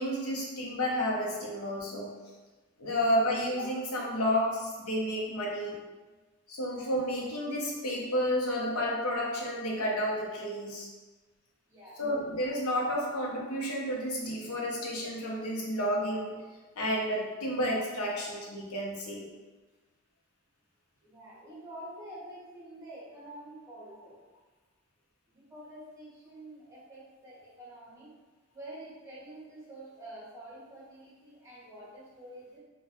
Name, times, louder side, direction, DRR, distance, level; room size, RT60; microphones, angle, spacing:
voice 1, 0.0-2.2 2.8-5.8 6.5-10.9 12.0-16.4 16.8-19.3, equal, 90° left, -3 dB, 0.7 m, -31 dB
voice 2, 11.7-12.0 21.0-24.2 25.3-28.1 28.5-32.6, right 1 dB, 15° right, -8 dB, 0.9 m, -47 dB
2.5 x 2.2 x 3.9 m, 1.2 s
head